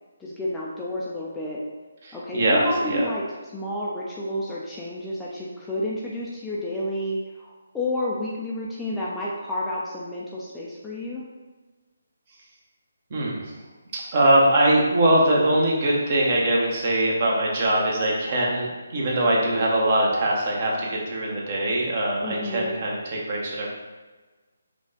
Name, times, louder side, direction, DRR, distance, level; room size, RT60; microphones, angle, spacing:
voice 1, 0.2-1.6 2.1-11.3 22.2-22.8, left 1 dB, 5° left, -6 dB, 0.5 m, -30 dB
voice 2, 2.1-3.1 13.1-13.5 13.9-23.7, right 1 dB, 40° right, -3 dB, 1.0 m, -22 dB
5.0 x 2.4 x 3.8 m, 1.3 s
figure-of-eight pair, 145°, 0 cm